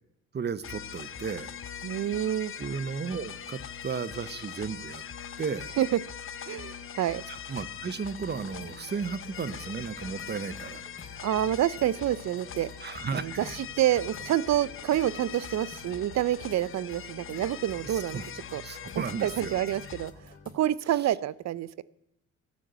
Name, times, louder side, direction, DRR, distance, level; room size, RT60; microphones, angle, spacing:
voice 1, 0.3-1.5 2.6-5.0 5.4-5.7 7.3-10.8 12.8-13.5 18.1-19.6, right 6 dB, 35° right, 16 dB, 0.9 m, -34 dB
sound 1, 0.6-20.1, left 8 dB, 45° left, 1.0 m, -42 dB
voice 2, 1.8-2.5 5.8-6.0 6.5-7.2 11.2-12.7 13.1-18.2 18.5-21.8, right 12 dB, 60° right, 20 dB, 0.7 m, -28 dB
sound 2, 8.0-20.5, left 2 dB, 30° left, 3.4 m, -51 dB
14.0 x 9.7 x 8.1 m, 0.80 s
cardioid pair, 90°, 30 cm